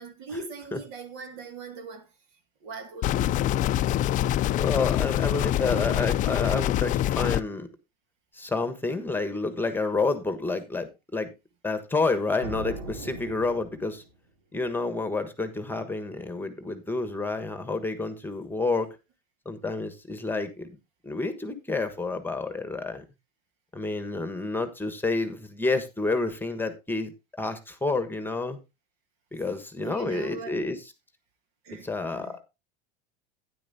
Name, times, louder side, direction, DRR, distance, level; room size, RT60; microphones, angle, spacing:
voice 1, 0.0-2.1 2.6-3.4 29.8-30.6 31.6-32.4, right 4 dB, 65° right, 2.2 m, -40 dB
sound 1, 3.0-7.4, left 13 dB, 40° left, 0.4 m, -25 dB
voice 2, 4.6-7.7 8.3-11.3 11.6-14.0 14.5-18.9 19.4-20.8 21.0-23.0 23.7-27.1 27.4-28.6 29.3-30.8 31.8-32.4, left 3 dB, 10° left, 1.3 m, -29 dB
sound 2, 12.4-14.2, right 2 dB, 90° right, 2.7 m, -39 dB
12.0 x 10.0 x 2.7 m
hypercardioid pair, 95°, 21 cm